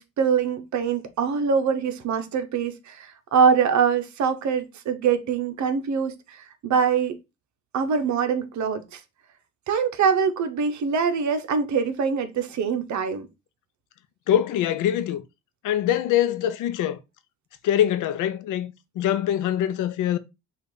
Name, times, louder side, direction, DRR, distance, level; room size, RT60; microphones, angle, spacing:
voice 1, 0.0-6.4 6.6-7.2 7.7-9.0 9.7-13.3, right 6 dB, 70° right, 0.9 m, -24 dB
voice 2, 14.3-15.2 15.6-17.0 17.6-20.2, left 11 dB, 85° left, 0.7 m, -23 dB
5.6 x 2.5 x 3.8 m
cardioid pair, 90°, 30 cm